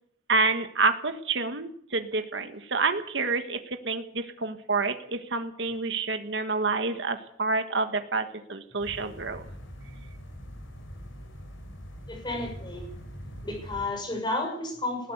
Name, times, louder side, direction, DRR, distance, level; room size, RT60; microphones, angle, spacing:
voice 1, 0.3-9.4, right 3 dB, 60° right, 7 dB, 1.6 m, -28 dB
sound 1, 8.8-13.8, equal, 75° left, 5.3 m, -43 dB
voice 2, 12.1-12.8 13.4-15.1, left 2 dB, 20° left, 4 dB, 6.2 m, -32 dB
20.0 x 16.0 x 8.2 m, 0.64 s
head